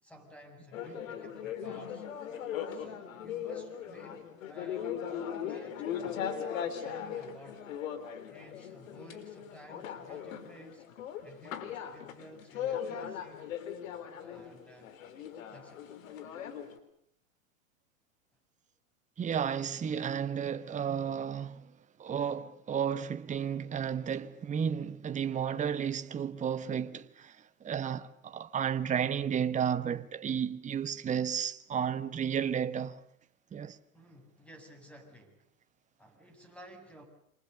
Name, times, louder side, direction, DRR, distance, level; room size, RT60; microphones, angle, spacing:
voice 1, 0.0-2.0 2.7-7.6 8.3-10.8 11.2-13.5 14.2-14.9 15.5-15.9 33.9-35.4 36.0-37.0, right 1 dB, 5° left, 7.7 m, -53 dB
sound 1, 0.7-16.8, left 8 dB, 65° left, 3.9 m, -39 dB
voice 2, 19.2-21.7 22.0-33.0 33.5-33.8, right 8 dB, 15° right, 1.2 m, -33 dB
28.5 x 26.0 x 6.8 m
hypercardioid pair, 110°, 42 cm